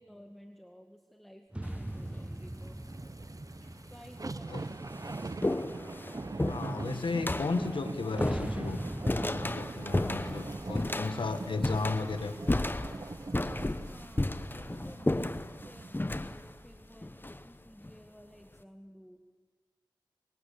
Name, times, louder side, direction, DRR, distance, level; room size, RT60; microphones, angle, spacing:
voice 1, 0.0-2.8 3.9-5.5 13.9-19.2, equal, ahead, 4 dB, 1.9 m, -54 dB
sound 1, 1.5-5.2 8.1-11.9, right 1 dB, 15° right, 0.7 m, -41 dB
sound 2, 1.6-2.1 3.0-3.1 4.0-4.1 4.4-18.0, left 1 dB, 25° left, 1.0 m, -34 dB
sound 3, 1.9-16.4 16.8-16.9, right 3 dB, 45° right, 0.8 m, -43 dB
voice 2, 6.4-8.8 9.1-12.3, left 3 dB, 90° left, 8 dB, 1.6 m, -34 dB
24.0 x 21.5 x 8.7 m, 1.4 s
wide cardioid pair, 55°, 8 cm